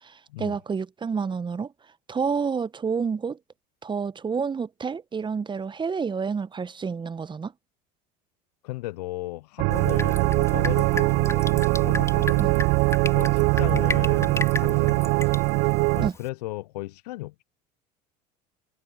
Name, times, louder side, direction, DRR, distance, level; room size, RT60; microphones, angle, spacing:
voice 1, 0.0-1.7 2.1-3.4 3.8-7.5 12.4-12.5 16.0-16.2, right 5 dB, 20° right, 1.0 m, -29 dB
voice 2, 8.6-12.5 13.1-15.2 16.0-17.4, left 19 dB, 70° left, 0.7 m, -36 dB
sound 1, 9.6-16.1, right 29 dB, 55° right, 0.5 m, -22 dB
Drip, 9.7-16.3, left 3 dB, 15° left, 4.6 m, -35 dB
hypercardioid pair, 75°, 21 cm